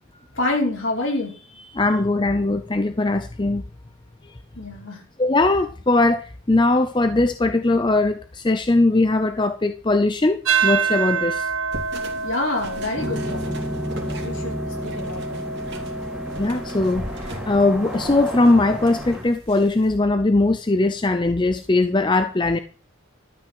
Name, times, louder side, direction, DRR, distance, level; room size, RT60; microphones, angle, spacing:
voice 1, 0.3-1.8 4.6-5.0 12.2-13.6 14.0-15.4, left 2 dB, 60° left, -1 dB, 5.0 m, -28 dB
voice 2, 1.8-3.6 5.2-11.5 16.4-22.6, left 2 dB, 20° left, 9 dB, 0.5 m, -20 dB
sound 1, 10.4-18.9, right 5 dB, 80° right, 0.9 m, -28 dB
sound 2, 11.7-19.9, right 1 dB, 50° right, 2.7 m, -39 dB
sound 3, 12.9-19.2, equal, 5° right, 2.8 m, -32 dB
12.5 x 5.7 x 7.7 m, 0.39 s
head